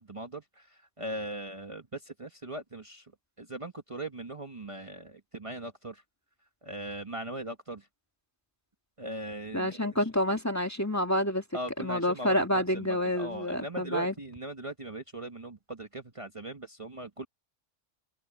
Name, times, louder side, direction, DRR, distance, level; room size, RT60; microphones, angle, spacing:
voice 1, 0.0-3.1 3.4-6.0 6.6-7.9 9.0-10.0 11.5-17.3, right 1 dB, 30° right, 1.4 m, -39 dB
voice 2, 9.5-11.4 11.8-14.1, left 1 dB, 15° left, 1.8 m, -28 dB
omnidirectional pair, 1.2 m